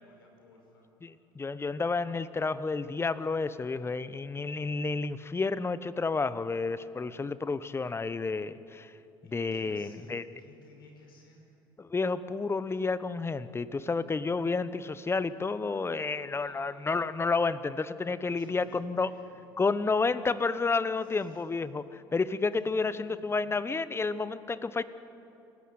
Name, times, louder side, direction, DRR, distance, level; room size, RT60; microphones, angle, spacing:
voice 1, 0.0-0.9 9.2-11.5 16.4-17.1 18.2-19.2 21.0-21.4 22.5-23.5, left 2 dB, 85° left, 1 dB, 5.8 m, -57 dB
voice 2, 1.0-8.9 9.3-10.2 11.8-19.1 19.6-24.8, left 4 dB, 20° left, 15 dB, 1.1 m, -30 dB
27.0 x 15.0 x 9.7 m, 2.8 s
hypercardioid pair, 65°, 12 cm